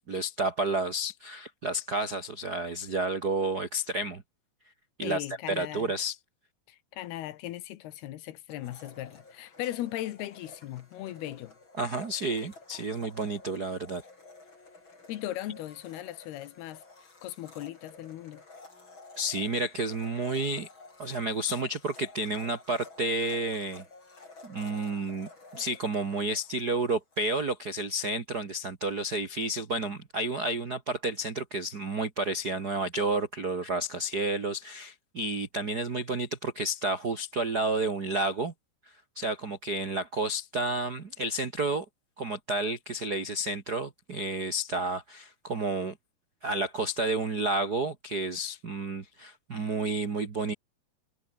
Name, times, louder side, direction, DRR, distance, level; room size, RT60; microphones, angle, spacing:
voice 1, 0.0-4.2 5.0-6.2 11.8-14.0 19.2-20.7 21.0-23.8 24.4-38.5 39.1-41.8 42.2-46.0 46.4-50.5, right 2 dB, 55° right, 1.1 m, -31 dB
voice 2, 5.0-5.9 6.7-11.5 15.1-16.8 17.2-18.4, left 14 dB, 75° left, 3.1 m, -38 dB
Domestic sounds home sounds, 8.5-27.3, left 3 dB, 30° left, 6.1 m, -52 dB
omnidirectional pair, 4.7 m